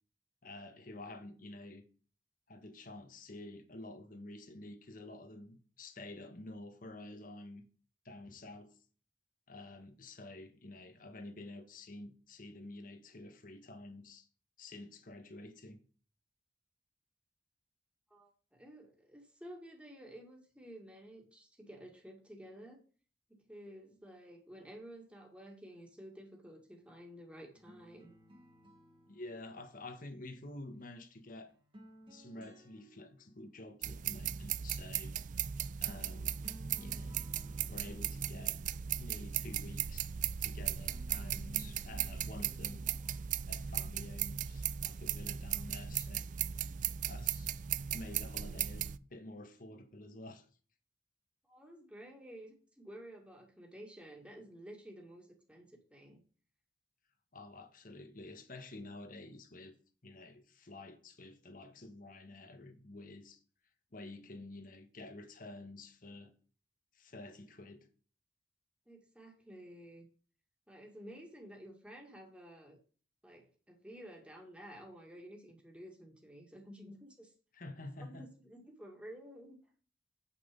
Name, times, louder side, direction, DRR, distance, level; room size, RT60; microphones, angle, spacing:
voice 1, 0.4-1.8 2.5-7.7 8.0-8.8 9.5-14.3 14.6-15.8 29.1-31.5 32.1-35.2 35.8-36.4 36.8-37.2 37.7-38.6 38.9-40.1 40.4-42.9 43.5-46.3 47.1-47.5 47.9-50.5 57.3-59.7 60.0-63.4 63.9-66.3 66.9-67.9 77.5-78.3, left 2 dB, 50° left, 1.4 m, -49 dB
voice 2, 18.1-22.8 23.3-28.1 51.4-56.2 68.9-70.1 70.7-72.8 73.2-77.3 78.0-79.6, equal, 5° right, 2.1 m, -52 dB
sound 1, 27.5-30.8 31.5-33.7 35.4-35.5 35.9-39.5 40.6-45.6, equal, 30° right, 1.9 m, -59 dB
sound 2, 33.8-49.0, right 9 dB, 45° right, 0.4 m, -37 dB
8.5 x 6.0 x 5.3 m
head